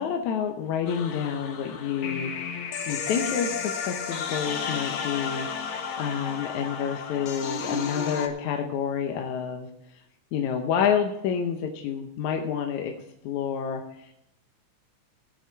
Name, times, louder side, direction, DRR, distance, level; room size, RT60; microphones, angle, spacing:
voice 1, 0.0-2.6 2.9-9.7 10.3-12.9 13.2-14.1, left 7 dB, 75° left, 3 dB, 2.3 m, -29 dB
sound 1, 0.9-8.3, left 6 dB, 60° left, 1.5 m, -32 dB
17.0 x 7.1 x 4.6 m, 0.80 s
omnidirectional pair, 3.4 m